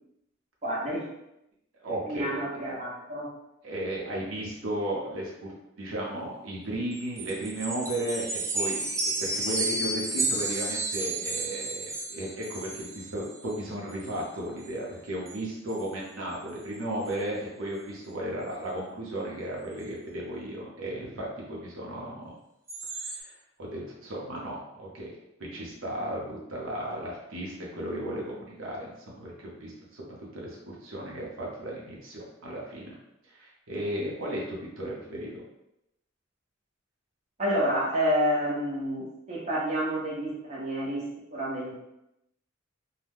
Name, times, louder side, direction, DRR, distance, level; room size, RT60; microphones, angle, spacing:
voice 1, 0.6-1.1 2.1-3.3 37.4-41.1 41.3-41.7, equal, 35° right, -5 dB, 0.7 m, -29 dB
voice 2, 1.8-2.4 3.6-5.5 5.8-8.9 9.2-22.3 23.0-25.1 25.4-30.1 30.3-32.9 33.3-35.4, right 1 dB, 85° right, -4 dB, 0.8 m, -35 dB
sound 1, 6.9-13.6 13.9-14.2 14.6-14.7 15.1-15.4 15.7-15.8 16.3-16.4 16.7-17.1 22.7-23.2, right 2 dB, 15° right, 0.3 m, -32 dB
2.7 x 2.2 x 3.5 m, 0.87 s
head